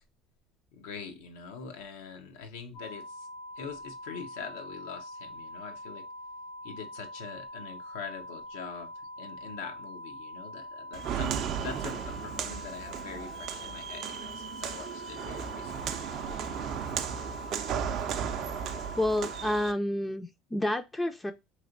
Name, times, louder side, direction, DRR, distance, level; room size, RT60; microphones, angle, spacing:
voice 1, 0.7-3.3 3.6-6.1 6.6-8.9 9.2-16.0, left 6 dB, 85° left, 0.6 m, -43 dB
sound 1, 2.7-19.6, left 1 dB, 70° left, 1.1 m, -44 dB
Walk footsteps, 10.9-19.7, right 8 dB, 55° right, 0.4 m, -35 dB
voice 2, 19.0-21.3, left 1 dB, 10° left, 0.4 m, -29 dB
3.1 x 2.8 x 2.5 m
supercardioid pair, 95°, 0 cm